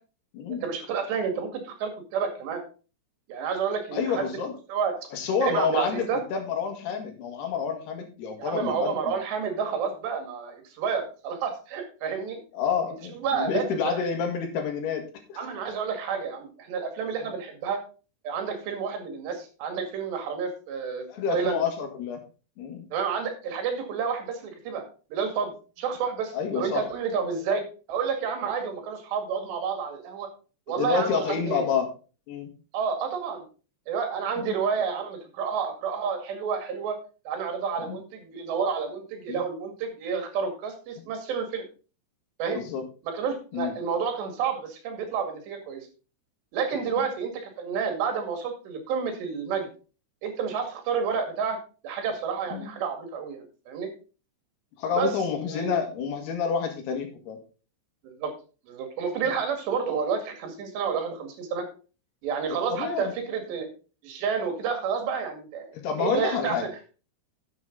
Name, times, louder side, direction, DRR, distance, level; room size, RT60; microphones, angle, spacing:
voice 1, 0.5-2.6 3.3-4.3 4.7-5.0 5.4-6.2 8.4-12.4 13.1-14.0 15.4-17.8 18.2-21.6 22.9-24.9 25.1-27.6 27.9-30.3 30.7-31.7 32.7-33.4 33.9-37.0 37.3-41.7 42.4-42.6 43.0-45.9 46.5-49.7 50.2-51.6 51.8-53.9 54.9-55.1 55.5-55.8 58.0-58.3 58.7-61.7 62.2-63.7 64.0-65.7 66.0-66.7, right 6 dB, 80° right, 5 dB, 4.2 m, -30 dB
voice 2, 3.9-4.5 5.1-9.2 12.5-15.4 17.2-17.3 21.1-22.2 22.6-22.9 26.3-26.8 30.8-31.9 32.3-32.5 34.4-34.5 37.8-38.0 39.3-39.4 42.6-42.8 43.5-43.7 46.9-47.0 52.5-52.7 54.8-57.4 62.5-63.1 65.7-66.7, left 6 dB, 75° left, 5 dB, 3.7 m, -29 dB
11.0 x 7.5 x 3.8 m, 0.35 s
omnidirectional pair, 4.9 m